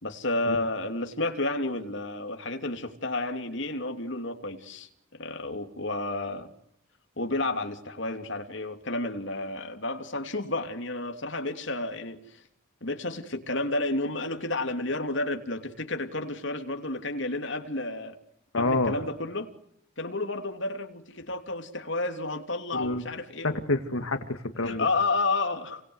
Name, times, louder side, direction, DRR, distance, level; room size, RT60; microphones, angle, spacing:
voice 1, 0.0-6.5 7.2-12.4 12.8-18.2 18.6-19.5 20.0-23.6 24.6-25.8, left 2 dB, 60° left, 3.1 m, -31 dB
voice 2, 18.5-19.0 22.7-23.0 23.4-24.9, left 2 dB, 80° left, 2.1 m, -27 dB
29.5 x 24.0 x 8.2 m
head